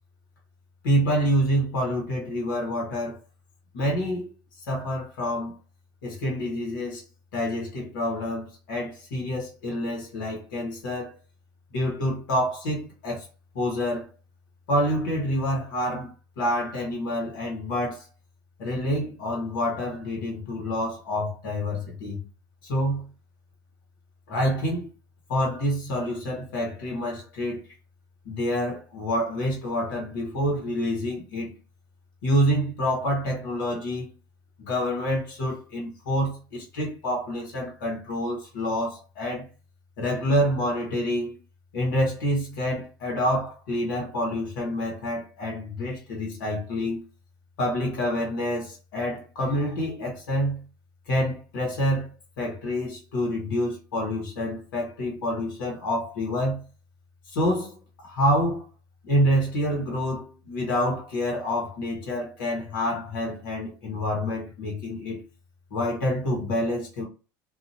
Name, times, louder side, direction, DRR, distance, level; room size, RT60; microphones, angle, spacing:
voice 1, 0.8-3.2 3.7-4.3 4.6-5.5 6.0-7.0 7.3-11.2 11.7-13.2 13.5-14.1 14.7-18.0 18.6-22.2 22.6-23.0 24.3-24.9 25.3-27.6 28.2-31.5 32.2-34.1 34.6-39.5 40.0-41.4 41.7-47.0 47.6-50.6 51.1-56.6 57.3-58.7 59.0-65.2 65.7-67.0, equal, 75° left, 1.3 m, -27 dB
2.7 x 2.6 x 2.6 m
hypercardioid pair, 75°, 11 cm